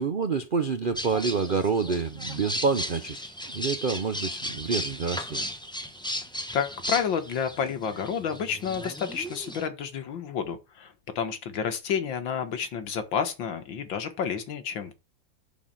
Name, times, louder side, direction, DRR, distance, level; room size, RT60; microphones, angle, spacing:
voice 1, 0.0-5.5, right 5 dB, 75° right, 0.4 m, -28 dB
sound 1, 1.0-9.7, equal, 5° left, 0.9 m, -35 dB
voice 2, 6.5-14.9, left 7 dB, 90° left, 2.2 m, -30 dB
9.8 x 4.2 x 7.5 m
omnidirectional pair, 2.0 m